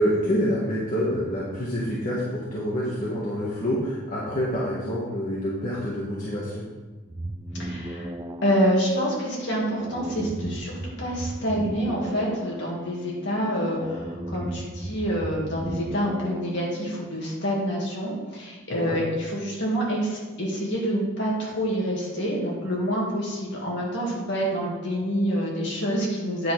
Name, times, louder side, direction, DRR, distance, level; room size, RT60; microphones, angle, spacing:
voice 1, 0.0-6.6 18.7-19.0, equal, 40° left, -7 dB, 1.5 m, -27 dB
sound 1, 7.1-17.1, right 1 dB, 15° right, 0.3 m, -36 dB
voice 2, 7.5-8.1 8.4-26.5, equal, 55° left, -4 dB, 2.4 m, -27 dB
9.3 x 6.2 x 4.6 m, 1.2 s
head